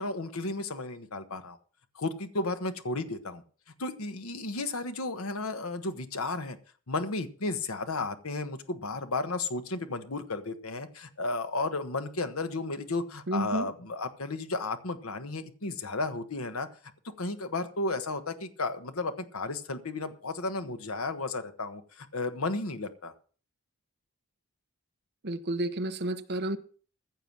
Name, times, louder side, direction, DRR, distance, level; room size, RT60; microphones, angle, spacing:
voice 1, 0.0-1.6 1.9-3.4 3.8-6.6 6.9-16.7 17.2-23.1, left 3 dB, 70° left, 1.2 m, -33 dB
voice 2, 13.3-13.7 25.2-26.6, right 1 dB, 50° right, 1.1 m, -31 dB
15.0 x 6.9 x 6.0 m
head